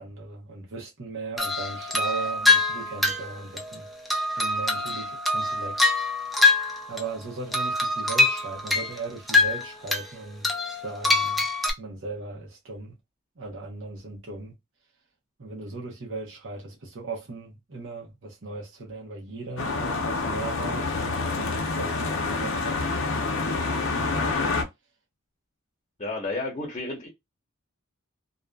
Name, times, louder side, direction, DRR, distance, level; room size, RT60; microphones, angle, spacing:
voice 1, 0.0-3.9 4.4-5.8 6.9-10.5 10.8-11.4 11.8-13.0 13.4-14.5 15.4-23.0 23.6-24.5, right 3 dB, 65° right, 0.9 m, -38 dB
sound 1, 1.4-7.2 7.5-10.1 10.4-11.7, left 3 dB, ahead, 0.4 m, -24 dB
sound 2, 19.6-24.6, left 3 dB, 65° left, 0.7 m, -27 dB
voice 2, 26.0-27.1, left 2 dB, 30° left, 0.9 m, -31 dB
2.6 x 2.4 x 2.2 m
head